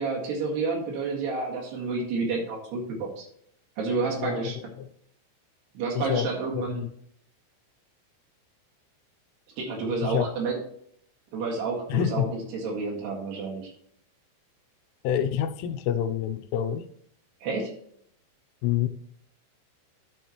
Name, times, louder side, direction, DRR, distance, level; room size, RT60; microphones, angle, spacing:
voice 1, 0.0-3.3 3.8-4.6 5.8-6.8 9.6-10.6 11.3-13.7 17.4-17.7, right 4 dB, 65° right, 3.7 m, -30 dB
voice 2, 4.2-4.9 6.0-6.9 10.0-10.3 11.9-12.3 15.0-16.9 18.6-18.9, left 10 dB, 85° left, 3.1 m, -28 dB
11.5 x 7.1 x 3.0 m
omnidirectional pair, 5.6 m